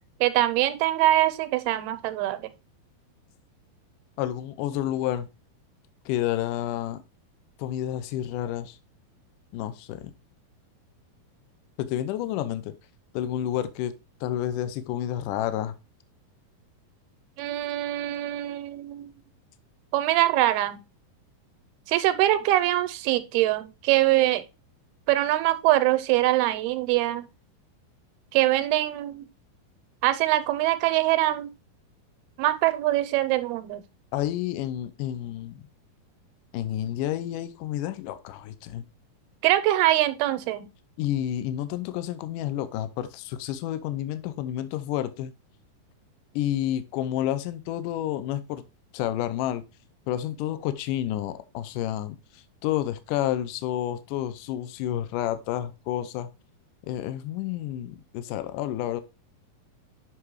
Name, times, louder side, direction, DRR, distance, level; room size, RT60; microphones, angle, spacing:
voice 1, 0.2-2.5 17.4-19.1 19.9-20.8 21.9-24.4 25.1-27.3 28.3-29.3 30.0-31.5 32.4-33.8 39.4-40.7, right 15 dB, 85° right, 2.7 m, -23 dB
voice 2, 4.2-5.3 6.1-7.0 7.6-8.8 9.5-10.1 11.8-12.7 13.1-13.9 14.2-15.7 34.1-35.6 36.5-38.8 41.0-45.3 46.3-48.6 48.9-49.6 50.1-52.2 52.6-56.3 56.9-59.0, left 12 dB, 80° left, 2.0 m, -30 dB
8.0 x 5.8 x 3.1 m
omnidirectional pair, 4.4 m